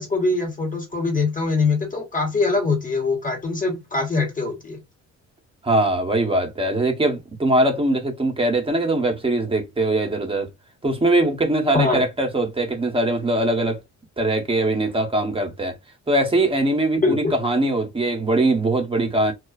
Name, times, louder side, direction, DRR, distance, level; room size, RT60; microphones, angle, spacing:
voice 1, 0.0-4.8 11.7-12.0 17.0-17.3, left 3 dB, 25° left, 1.2 m, -23 dB
voice 2, 5.6-10.5 10.8-13.8 14.2-15.7 16.1-19.3, right 1 dB, 20° right, 0.8 m, -21 dB
2.3 x 2.3 x 2.3 m
cardioid pair, 90°, 30 cm